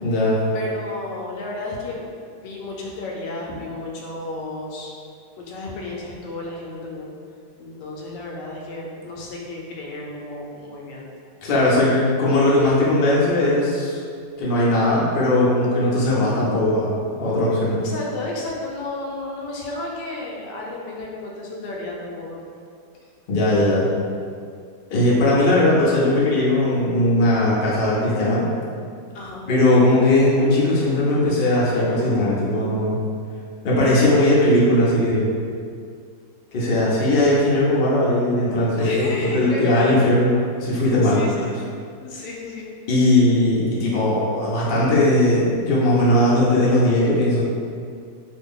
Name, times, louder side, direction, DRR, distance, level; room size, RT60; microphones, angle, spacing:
voice 1, 0.0-0.4 11.4-14.0 14.4-17.8 23.3-23.9 24.9-28.4 29.5-33.0 33.6-35.3 36.5-39.0 39.3-41.3 42.9-47.4, left 1 dB, 55° left, -7 dB, 0.5 m, -18 dB
voice 2, 0.5-2.1 2.4-4.9 5.4-7.1 7.6-11.1 17.8-22.4 29.1-29.5 38.8-40.3 41.0-41.5 42.0-42.7, left 2 dB, 80° left, -2 dB, 1.2 m, -32 dB
2.9 x 2.5 x 3.5 m, 2.3 s
omnidirectional pair, 1.9 m